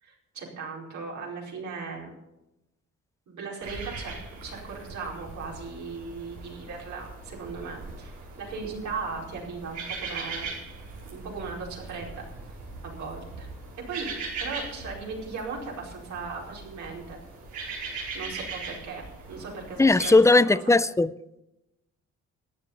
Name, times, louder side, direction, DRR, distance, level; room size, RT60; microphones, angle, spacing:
voice 1, 0.0-2.1 3.3-4.1 4.4-10.5 11.1-12.2 12.8-13.5 13.8-17.2 18.1-20.6, right 4 dB, 70° right, 4.7 m, -38 dB
sound 1, 3.6-20.1, right 4 dB, 90° right, 5.0 m, -40 dB
voice 2, 19.8-21.1, left 2 dB, 10° left, 0.4 m, -18 dB
13.5 x 8.9 x 7.2 m
cardioid pair, 90°, 30 cm